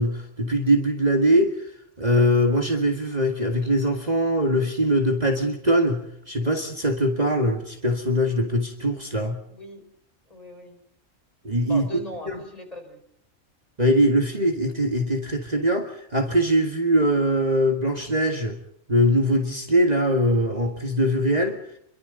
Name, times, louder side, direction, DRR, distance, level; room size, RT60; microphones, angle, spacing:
voice 1, 0.0-1.7 2.0-9.4 11.4-11.9 12.3-12.4 13.8-18.6 18.9-21.6, equal, 30° right, 2 dB, 2.0 m, -22 dB
voice 2, 9.5-9.8 10.3-10.8 11.7-13.0, right 1 dB, 30° left, 4 dB, 4.7 m, -38 dB
29.5 x 23.0 x 4.0 m, 0.71 s
omnidirectional pair, 1.4 m